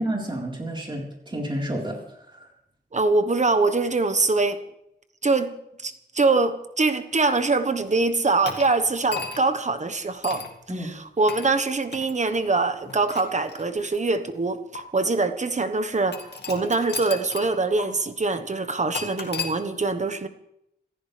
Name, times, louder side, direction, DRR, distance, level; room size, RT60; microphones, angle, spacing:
voice 1, 0.0-2.5 10.7-10.9, right 1 dB, 25° right, -2 dB, 4.2 m, -30 dB
voice 2, 2.9-4.6 5.2-5.5 5.8-10.4 10.8-20.3, right 3 dB, 45° right, 9 dB, 1.3 m, -23 dB
sound 1, 8.5-9.6 10.2-10.5 11.3-11.5 11.9-12.1 12.9-14.0 14.8-14.9 16.1-17.5 17.8-17.9 18.9-19.5, left 5 dB, 80° left, 2.1 m, -35 dB
26.5 x 14.5 x 3.4 m, 0.80 s
wide cardioid pair, 110°, 17 cm